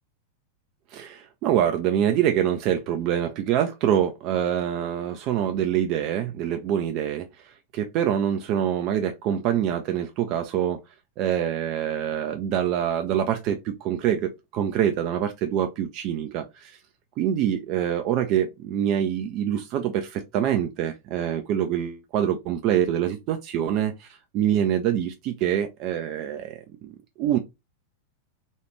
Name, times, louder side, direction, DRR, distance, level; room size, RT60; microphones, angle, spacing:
voice 1, 0.9-10.8 11.2-16.8 17.2-27.4, right 10 dB, 40° right, 0.4 m, -25 dB
3.1 x 2.3 x 3.1 m
figure-of-eight pair, 90°, 0 cm